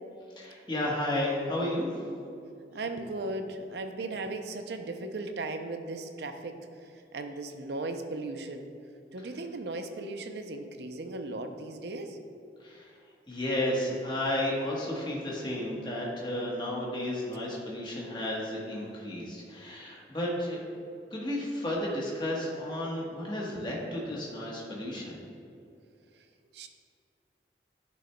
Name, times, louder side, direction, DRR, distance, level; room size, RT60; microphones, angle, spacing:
voice 1, 0.4-1.9 12.6-13.0 13.3-20.6 21.1-25.2, left 1 dB, 25° left, -3 dB, 1.1 m, -32 dB
voice 2, 2.7-8.7 9.1-12.2 26.5-26.7, right 2 dB, 70° right, 7 dB, 0.5 m, -37 dB
9.4 x 6.3 x 2.2 m, 2.5 s
head